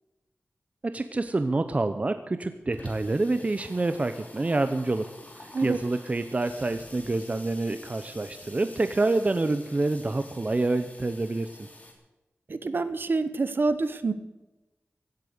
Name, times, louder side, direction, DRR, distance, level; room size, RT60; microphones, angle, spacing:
voice 1, 0.8-5.1 5.4-11.5, right 2 dB, 35° right, 10 dB, 0.7 m, -27 dB
Water tap faucet / Sink (filling or washing), 2.3-11.9, left 1 dB, 35° left, 3.0 m, -48 dB
voice 2, 12.5-14.1, right 3 dB, 55° right, 12 dB, 1.1 m, -27 dB
16.5 x 8.7 x 8.0 m, 1.1 s
wide cardioid pair, 110°, 4 cm